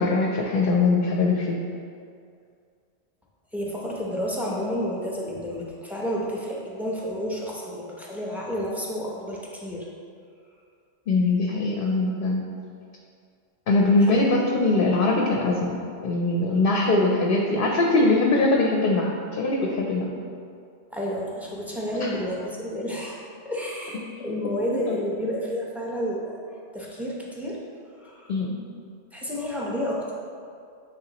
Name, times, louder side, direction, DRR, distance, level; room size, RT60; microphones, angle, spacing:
voice 1, 0.0-1.6 11.1-12.4 13.7-15.8 16.0-20.1 22.0-22.1 24.9-25.0 28.3-28.6, left 2 dB, 60° left, 0 dB, 0.7 m, -22 dB
voice 2, 3.5-9.9 14.0-14.2 20.9-26.4 26.7-27.6 28.0-28.3 29.1-30.1, equal, ahead, -4 dB, 0.6 m, -30 dB
8.7 x 3.7 x 2.9 m, 2.3 s
omnidirectional pair, 1.2 m